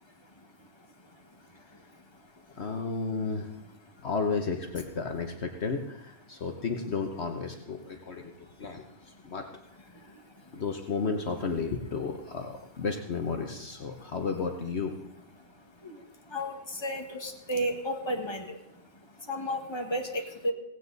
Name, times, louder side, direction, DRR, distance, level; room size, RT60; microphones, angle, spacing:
voice 1, 0.2-2.0 2.3-2.6 3.9-4.0 7.8-9.4 9.9-10.6 14.0-14.1 15.4-20.5, equal, 20° left, 3 dB, 1.8 m, -37 dB
voice 2, 2.6-3.5 4.0-8.3 8.6-8.8 9.2-9.4 10.5-14.9, left 4 dB, 60° left, 4 dB, 1.3 m, -32 dB
17.5 x 16.5 x 4.0 m, 0.81 s
omnidirectional pair, 1.3 m